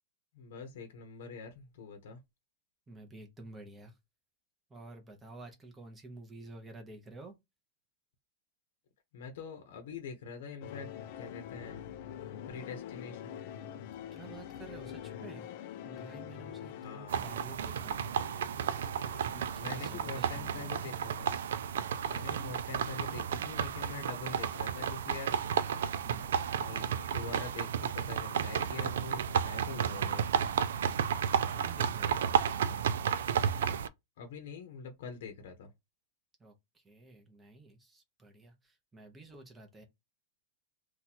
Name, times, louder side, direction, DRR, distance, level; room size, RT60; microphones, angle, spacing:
voice 1, 0.3-2.2 9.1-11.8 12.5-13.4 16.7-17.2 19.6-21.4 22.1-25.4 26.5-30.3 34.2-35.7, left 5 dB, 60° left, 0.8 m, -44 dB
voice 2, 2.9-4.0 4.7-7.3 14.1-15.5 15.8-18.5 19.0-20.9 26.0-26.4 30.9-32.8 36.4-39.8, right 2 dB, 10° right, 0.6 m, -51 dB
sound 1, 10.6-19.2, left 10 dB, 45° left, 0.3 m, -45 dB
sound 2, 17.1-33.9, right 8 dB, 85° right, 0.3 m, -32 dB
2.8 x 2.3 x 4.1 m
supercardioid pair, 175°, 0 cm